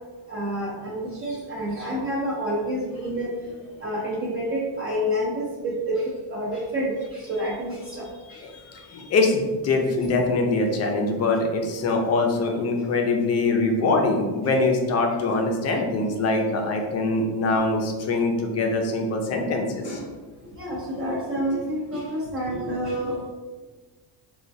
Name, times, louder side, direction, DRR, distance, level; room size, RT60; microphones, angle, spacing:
voice 1, 0.3-3.3 3.8-8.4 10.0-10.1 17.5-17.6 18.1-18.2 19.8-20.1 20.4-23.2, equal, 30° right, -5 dB, 0.5 m, -29 dB
voice 2, 8.5-20.0, left 3 dB, 35° left, 2 dB, 0.4 m, -23 dB
4.2 x 2.3 x 2.6 m, 1.3 s
cardioid pair, 155°, 46 cm